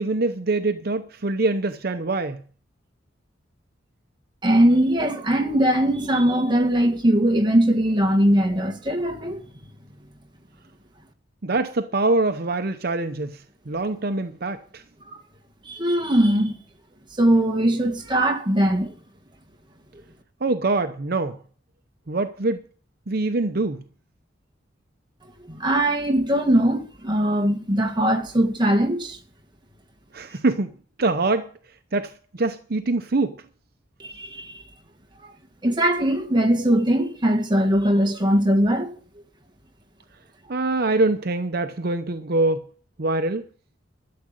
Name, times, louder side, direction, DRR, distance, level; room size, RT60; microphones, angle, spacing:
voice 1, 0.0-2.4 11.4-14.8 20.4-21.4 22.1-22.6 23.1-23.8 30.1-30.7 31.0-31.5 31.9-33.4 40.5-42.7 43.0-43.5, right 2 dB, 55° right, 0.8 m, -24 dB
voice 2, 4.4-9.4 15.6-16.6 17.2-18.9 25.4-29.2 34.0-34.6 35.6-39.0, right 1 dB, 25° right, 1.7 m, -20 dB
13.0 x 7.5 x 9.3 m
head